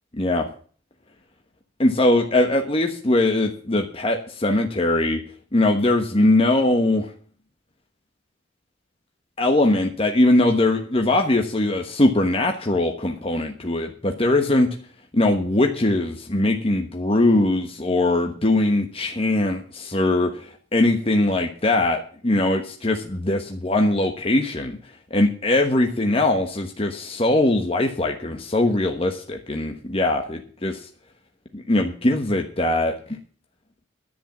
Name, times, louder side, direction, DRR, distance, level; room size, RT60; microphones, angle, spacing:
voice 1, 0.1-0.5 1.8-5.2 5.5-7.1 9.4-14.8 15.1-24.8 25.1-30.9 31.5-33.2, left 2 dB, 30° left, 3 dB, 1.2 m, -21 dB
10.5 x 8.7 x 7.2 m, 0.44 s
head